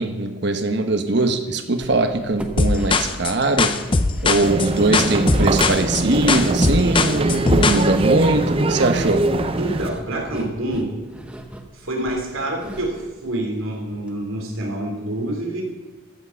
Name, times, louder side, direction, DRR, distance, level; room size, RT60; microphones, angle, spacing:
voice 1, 0.0-3.7 4.2-9.3, right 2 dB, 55° right, 7 dB, 1.0 m, -21 dB
sound 1, 1.8-14.1 14.4-14.5 14.8-14.9, equal, 5° right, 0.8 m, -37 dB
sound 2, 2.6-7.9, left 3 dB, 25° left, 0.5 m, -20 dB
sound 3, 4.4-9.9, right 2 dB, 25° right, 0.5 m, -22 dB
voice 2, 9.6-10.9 11.7-15.6, right 1 dB, 80° right, 1 dB, 2.9 m, -27 dB
14.0 x 7.5 x 6.9 m, 1.2 s
head